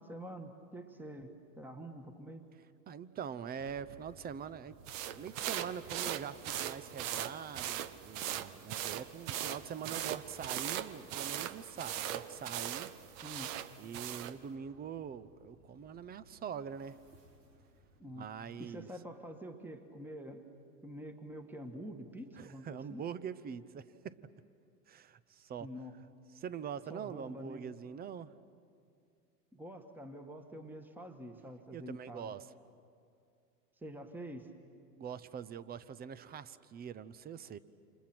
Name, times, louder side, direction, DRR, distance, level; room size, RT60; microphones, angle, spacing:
voice 1, 0.0-2.4 6.0-6.1 13.2-13.5 18.0-18.3 18.6-20.4 20.8-23.0 25.6-25.9 26.9-27.7 29.5-32.3 33.8-34.5, equal, 5° right, 6 dB, 1.5 m, -47 dB
voice 2, 2.9-4.8 5.1-12.9 13.8-17.0 18.2-18.9 22.4-24.2 24.9-25.7 26.3-28.3 31.7-32.5 35.0-37.6, right 7 dB, 20° right, 17 dB, 0.6 m, -44 dB
sound-Sirens from inside apartment, 3.6-18.0, equal, 85° right, 3.3 m, -62 dB
sound 1, 4.9-14.4, right 11 dB, 55° right, 1.1 m, -39 dB
29.5 x 26.5 x 6.1 m, 2.4 s
hypercardioid pair, 105°, 48 cm